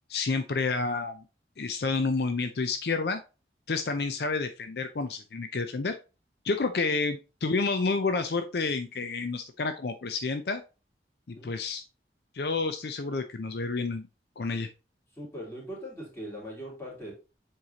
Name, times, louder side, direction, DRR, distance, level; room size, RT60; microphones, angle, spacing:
voice 1, 0.1-1.2 1.6-3.2 3.7-6.0 6.4-10.6 11.4-11.8 12.3-14.1 14.4-14.7, left 4 dB, 65° left, 8 dB, 0.5 m, -29 dB
voice 2, 15.1-17.1, equal, 15° left, -5 dB, 3.0 m, -41 dB
7.2 x 4.7 x 2.9 m, 0.31 s
head